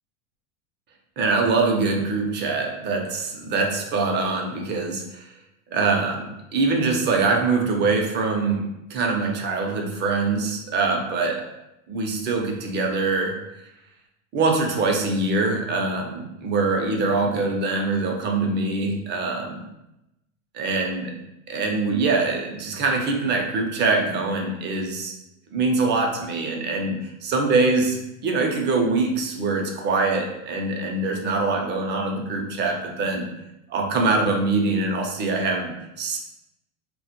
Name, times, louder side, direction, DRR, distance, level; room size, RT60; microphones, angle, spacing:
voice 1, 1.2-5.3 5.7-8.6 8.9-11.4 11.9-13.3 14.3-19.6 20.5-21.1 21.5-25.1 25.5-33.3 33.7-36.2, right 3 dB, 30° right, 2 dB, 0.4 m, -23 dB
2.1 x 2.1 x 2.8 m, 0.89 s
supercardioid pair, 110°, 37 cm